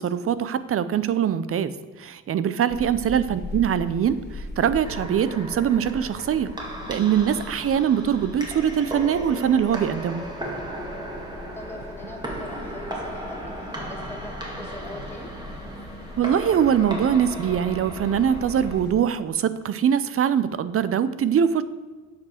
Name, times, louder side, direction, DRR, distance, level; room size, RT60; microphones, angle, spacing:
voice 1, 0.0-1.7 2.0-4.2 4.6-6.5 6.9-10.3 16.2-21.6, right 8 dB, 50° right, 14 dB, 0.6 m, -22 dB
sound 1, 2.7-18.9, left 1 dB, 35° left, 1.8 m, -40 dB
sound 2, 4.8-18.8, right 1 dB, 15° right, 2.0 m, -36 dB
voice 2, 11.5-15.3, left 1 dB, 10° left, -1 dB, 2.3 m, -41 dB
8.3 x 5.1 x 6.4 m, 1.4 s
cardioid pair, 90°, 30 cm